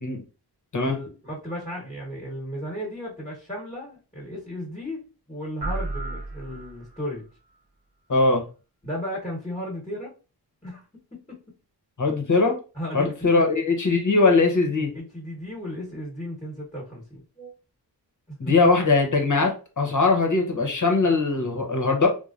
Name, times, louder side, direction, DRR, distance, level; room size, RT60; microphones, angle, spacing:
voice 1, 0.8-7.3 8.8-10.1 10.6-10.8 11.1-11.4 12.7-13.5 14.9-17.5 18.3-18.5, equal, 15° left, -4 dB, 1.2 m, -35 dB
sound 1, 5.6-7.2, right 2 dB, 70° right, 0.9 m, -33 dB
voice 2, 8.1-8.4 12.0-12.6 12.9-14.9 18.4-22.1, left 3 dB, 45° left, 3 dB, 0.8 m, -21 dB
3.1 x 2.1 x 2.4 m, 0.34 s
cardioid pair, 45°, 40 cm